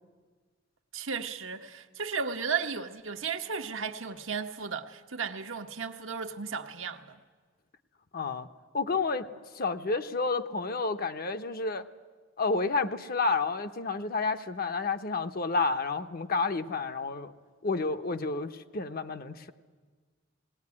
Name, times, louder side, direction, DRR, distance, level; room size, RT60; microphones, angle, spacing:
voice 1, 0.9-7.2, right 6 dB, 80° right, 1.2 m, -34 dB
voice 2, 8.1-8.5 8.7-9.3 9.5-11.9 12.4-17.3 17.6-19.5, left 4 dB, 50° left, 0.9 m, -30 dB
19.5 x 17.5 x 9.7 m
head